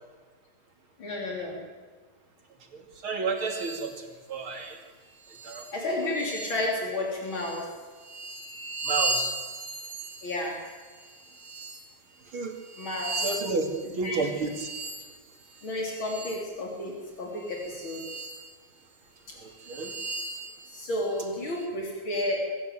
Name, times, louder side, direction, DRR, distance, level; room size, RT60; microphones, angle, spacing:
voice 1, 1.0-1.6 5.7-7.7 10.2-10.6 12.8-13.2 13.8-14.2 15.6-16.9 17.2-18.0 20.7-22.5, left 1 dB, 75° left, -1 dB, 4.3 m, -31 dB
voice 2, 2.7-4.8 5.4-5.7 8.9-9.3 12.3-12.5 13.2-14.7 19.4-19.9, right 4 dB, 85° right, 4 dB, 3.5 m, -31 dB
sound 1, 3.4-3.9 4.6-4.7 5.2-6.8 7.2-11.9 12.5-16.5 17.4-18.5 18.9-19.0 19.6-21.7, right 2 dB, 65° right, 3.1 m, -37 dB
24.0 x 14.0 x 9.3 m, 1.5 s
omnidirectional pair, 2.2 m